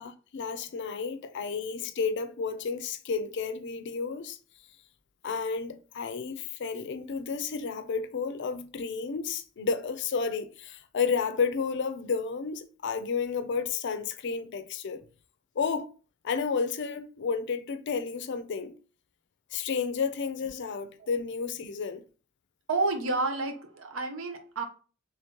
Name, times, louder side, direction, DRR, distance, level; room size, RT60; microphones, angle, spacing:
voice 1, 0.0-4.4 5.2-15.0 15.6-15.9 16.2-18.8 19.5-22.0, left 5 dB, 60° left, 0.4 m, -31 dB
voice 2, 22.7-24.6, right 3 dB, 80° right, 0.7 m, -30 dB
3.5 x 3.1 x 3.0 m
head